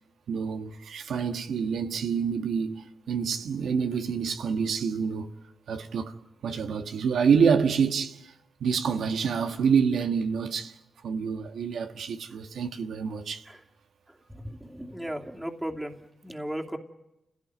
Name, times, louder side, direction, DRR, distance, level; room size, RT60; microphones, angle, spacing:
voice 1, 0.3-5.3 5.7-6.1 6.4-8.3 8.6-10.8 11.0-13.4, right 6 dB, 85° right, 1.6 m, -27 dB
voice 2, 14.3-15.9 16.2-16.8, right 1 dB, 10° right, 2.8 m, -35 dB
30.0 x 17.0 x 9.5 m
cardioid pair, 65°, 0 cm